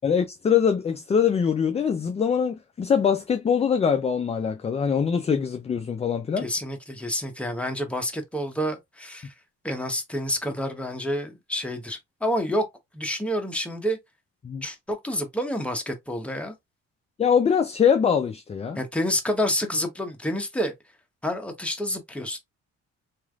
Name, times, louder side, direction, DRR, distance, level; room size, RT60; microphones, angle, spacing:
voice 1, 0.0-6.5 14.4-14.6 17.2-18.8, left 7 dB, 20° left, 0.3 m, -23 dB
voice 2, 6.4-9.3 9.6-12.6 12.9-14.0 14.6-16.5 18.7-20.7 21.2-22.4, equal, 5° left, 0.8 m, -28 dB
3.1 x 2.5 x 2.3 m
cardioid pair, 90°, 30 cm